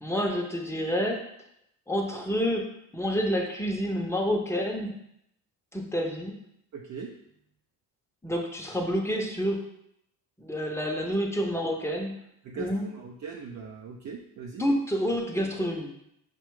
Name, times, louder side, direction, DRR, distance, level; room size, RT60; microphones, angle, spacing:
voice 1, 0.0-1.2 1.9-2.6 2.9-4.9 5.7-6.3 8.2-9.6 10.4-12.1 12.6-12.9 14.6-15.9, equal, 5° left, 1 dB, 0.7 m, -28 dB
voice 2, 6.7-7.2 12.4-14.6, right 5 dB, 45° right, 0 dB, 0.5 m, -40 dB
4.7 x 2.3 x 4.6 m, 0.76 s
cardioid pair, 105°, 42 cm